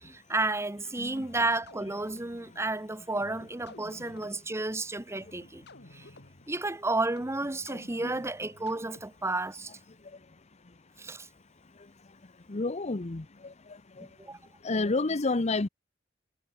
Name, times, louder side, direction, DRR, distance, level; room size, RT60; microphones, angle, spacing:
voice 1, 0.0-5.6 5.9-6.1 6.5-9.7 11.0-11.3 14.2-14.4, right 2 dB, 15° right, 0.9 m, -32 dB
sound 1, 1.2-9.4, left 2 dB, 60° left, 4.9 m, -53 dB
voice 2, 12.5-13.5 14.0-14.1 14.6-15.7, left 3 dB, 35° left, 0.8 m, -29 dB
head